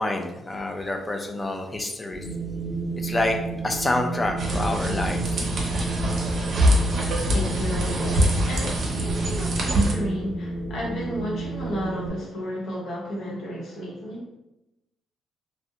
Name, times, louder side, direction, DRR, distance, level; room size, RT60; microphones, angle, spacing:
voice 1, 0.0-2.3 3.0-3.4 3.6-5.5, left 2 dB, 20° left, 3 dB, 0.4 m, -27 dB
Wind, 2.1-12.1, right 3 dB, 35° left, 0.8 m, -31 dB
sound 1, 4.4-9.9, equal, 55° right, 0.6 m, -24 dB
voice 2, 7.3-14.4, equal, 65° left, -3 dB, 0.8 m, -33 dB
2.4 x 2.1 x 2.7 m, 0.90 s
cardioid pair, 100°, 0 cm